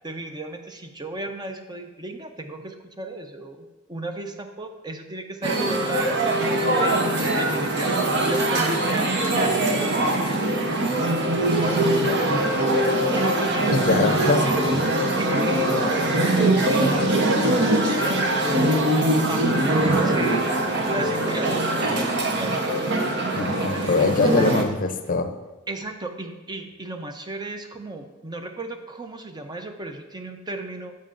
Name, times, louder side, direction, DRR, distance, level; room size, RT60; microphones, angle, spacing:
voice 1, 0.0-7.0 7.3-14.7 15.2-15.7 16.4-23.9 25.7-30.9, right 2 dB, 20° right, 5 dB, 0.6 m, -34 dB
sound 1, 5.4-24.6, right 1 dB, 55° right, 0.9 m, -22 dB
voice 2, 13.7-14.4 19.8-20.0 23.3-25.3, left 3 dB, 45° left, 8 dB, 0.6 m, -23 dB
14.0 x 5.4 x 2.6 m, 1.2 s
head